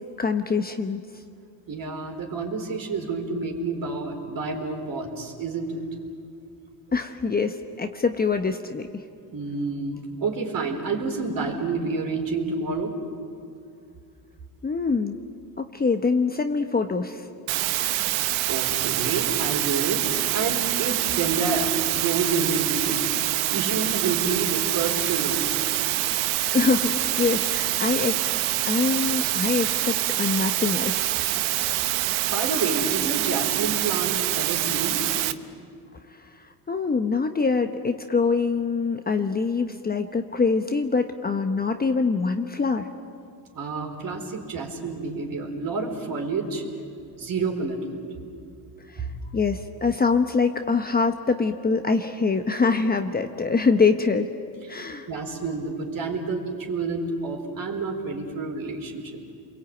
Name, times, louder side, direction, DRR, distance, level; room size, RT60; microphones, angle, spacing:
voice 1, 0.2-1.0 6.9-9.0 14.6-15.2 15.6-17.3 26.5-28.3 28.6-31.1 36.2-36.3 36.7-42.9 48.9-49.1 49.3-54.3 54.7-55.1, left 4 dB, 20° left, 6 dB, 1.1 m, -24 dB
voice 2, 1.7-5.8 9.3-12.9 18.5-20.1 20.3-23.1 23.5-25.4 32.3-35.0 43.5-46.6 47.2-48.0 49.0-49.3 55.1-59.2, right 4 dB, 45° right, 3 dB, 4.7 m, -29 dB
sound 1, 17.5-35.3, right 15 dB, 75° right, 1.2 m, -25 dB
29.5 x 22.5 x 8.9 m, 2.5 s
supercardioid pair, 105°, 48 cm